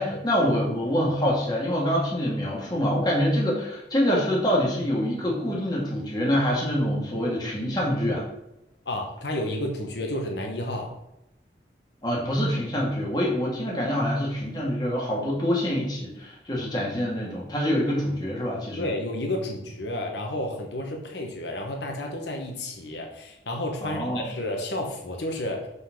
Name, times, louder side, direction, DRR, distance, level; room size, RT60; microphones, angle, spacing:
voice 1, 0.0-8.3 12.0-18.9 23.8-24.4, equal, 25° left, -3 dB, 1.7 m, -25 dB
voice 2, 8.8-10.9 18.8-25.7, left 1 dB, 80° left, 2 dB, 1.0 m, -31 dB
5.4 x 4.0 x 5.7 m, 0.88 s
head